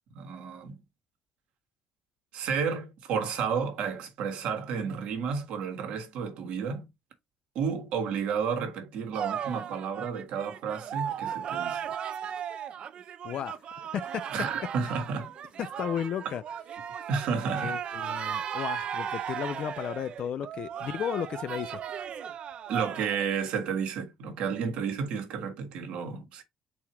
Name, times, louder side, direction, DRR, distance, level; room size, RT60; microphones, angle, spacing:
voice 1, 0.1-0.8 2.3-6.9 7.5-11.9 14.3-15.3 17.1-17.8 22.7-26.4, right 6 dB, 75° right, 1.3 m, -31 dB
sound 1, 9.1-23.3, right 8 dB, 60° right, 0.5 m, -36 dB
voice 2, 13.2-13.6 13.9-14.5 14.8-14.9 15.6-16.4 17.6-21.8, left 9 dB, 60° left, 0.4 m, -34 dB
4.1 x 2.8 x 4.5 m
supercardioid pair, 70°, 2 cm